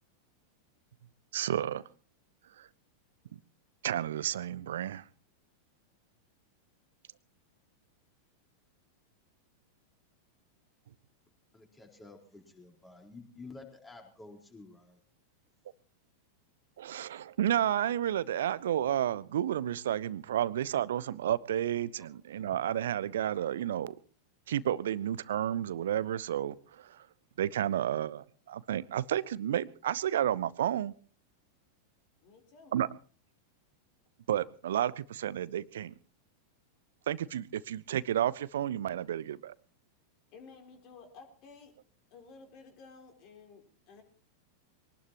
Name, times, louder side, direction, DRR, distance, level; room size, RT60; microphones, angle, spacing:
voice 1, 1.3-1.8 2.6-2.7 3.8-5.0 16.8-23.9 24.5-27.1 27.4-30.9 32.7-32.9 34.3-35.9 37.1-39.5, right 11 dB, 60° right, 20 dB, 0.8 m, -31 dB
voice 2, 11.5-15.0, left 3 dB, 10° left, 2 dB, 4.6 m, -51 dB
voice 3, 32.2-32.7 40.3-41.7 42.1-44.0, left 4 dB, 40° left, 5 dB, 4.1 m, -53 dB
23.5 x 19.0 x 3.0 m, 0.37 s
figure-of-eight pair, 90°, 0 cm